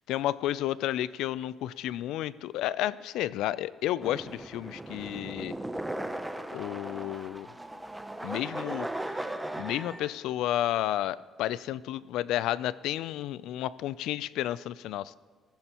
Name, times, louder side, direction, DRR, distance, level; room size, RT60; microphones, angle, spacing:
voice 1, 0.1-5.6 6.5-7.5 8.2-8.9 9.6-15.2, left 13 dB, 85° left, 18 dB, 0.3 m, -31 dB
sound 1, 4.0-10.2, right 1 dB, 5° right, 0.6 m, -37 dB
15.5 x 15.0 x 2.9 m, 1.4 s
cardioid pair, 140°, 0 cm